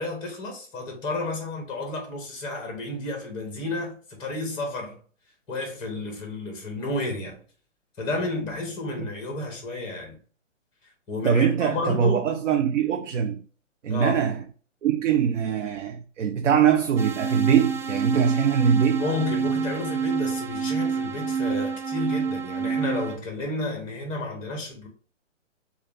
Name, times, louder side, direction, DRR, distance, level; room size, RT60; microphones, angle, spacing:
voice 1, 0.0-5.0 5.5-7.4 8.0-10.2 11.1-12.2 13.9-14.2 19.0-24.9, left 2 dB, 10° left, 1.1 m, -31 dB
voice 2, 11.2-13.4 13.8-14.4 14.8-19.0, right 8 dB, 70° right, 0.6 m, -22 dB
sound 1, 17.0-23.2, right 6 dB, 55° right, 1.0 m, -27 dB
6.5 x 2.5 x 2.6 m
hypercardioid pair, 155°, 38 cm